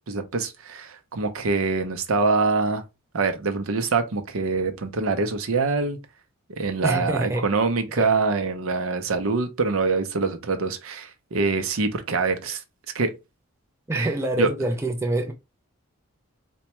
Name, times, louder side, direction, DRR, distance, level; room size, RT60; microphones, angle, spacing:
voice 1, 0.0-2.8 3.1-6.0 6.5-12.6 12.9-13.1 13.9-14.1 14.4-14.5, right 4 dB, 70° right, 0.6 m, -24 dB
voice 2, 6.8-7.4 8.0-8.1 13.9-15.3, right 2 dB, 10° right, 0.3 m, -25 dB
4.2 x 2.2 x 2.9 m
head